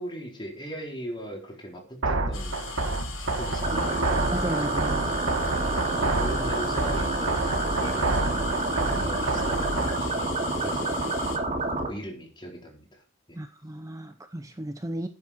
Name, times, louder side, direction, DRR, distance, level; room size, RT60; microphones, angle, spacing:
voice 1, 0.0-2.7 3.2-4.2 6.0-8.3 8.7-9.7 10.0-11.3 11.8-13.0 13.3-13.4, equal, 25° left, 4.3 m, -39 dB
sound 1, 2.0-10.0, right 2 dB, 85° right, 1.6 m, -29 dB
sound 2, 2.3-11.4, left 5 dB, 85° left, 5.5 m, -40 dB
sound 3, 3.6-11.9, right 2 dB, 35° right, 2.6 m, -28 dB
voice 2, 4.3-5.0 13.3-15.1, right 1 dB, 15° right, 0.7 m, -34 dB
12.5 x 9.6 x 4.4 m
head